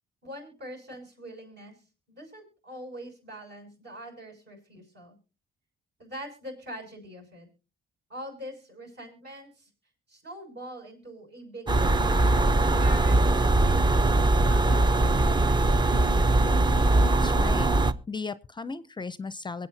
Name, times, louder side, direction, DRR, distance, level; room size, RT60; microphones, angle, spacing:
voice 1, 0.2-1.8 2.1-5.2 6.0-7.5 8.1-9.7 10.1-14.0 14.4-15.7, equal, 60° right, 2 dB, 6.6 m, -43 dB
sound 1, 11.7-17.9, right 2 dB, 20° right, 0.7 m, -21 dB
voice 2, 17.0-17.7 18.1-19.7, left 4 dB, 25° left, 15 dB, 0.5 m, -36 dB
24.0 x 8.6 x 2.7 m, 0.32 s
cardioid pair, 90°, 20 cm